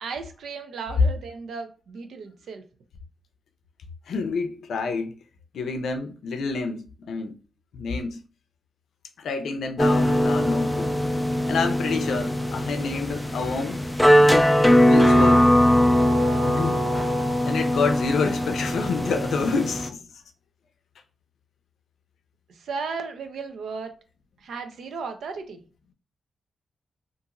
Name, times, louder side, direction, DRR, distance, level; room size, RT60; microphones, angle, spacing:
voice 1, 0.0-2.6 22.5-23.9 24.4-25.6, right 5 dB, 85° right, 0.5 m, -35 dB
voice 2, 4.1-5.1 5.5-7.3 7.7-8.2 9.2-10.9 11.5-13.8 14.8-15.5 16.4-16.9 17.4-20.0, left 4 dB, 90° left, 0.4 m, -28 dB
sound 1, 9.8-19.9, equal, 5° left, 0.3 m, -20 dB
2.8 x 2.5 x 2.5 m
wide cardioid pair, 130°, 0 cm